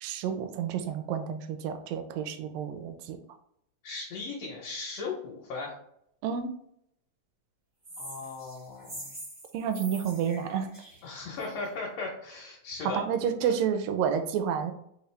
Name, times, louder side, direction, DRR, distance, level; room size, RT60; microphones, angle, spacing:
voice 1, 0.0-3.2 6.2-6.5 9.5-10.7 12.9-14.7, right 8 dB, 80° right, 7 dB, 1.5 m, -30 dB
voice 2, 3.8-5.7 8.0-9.1 11.0-13.0 13.4-13.5, left 4 dB, 70° left, -3 dB, 1.7 m, -37 dB
sound 1, 7.8-11.6, right 1 dB, 55° right, 0.5 m, -44 dB
4.9 x 2.6 x 3.2 m, 0.72 s
omnidirectional pair, 3.3 m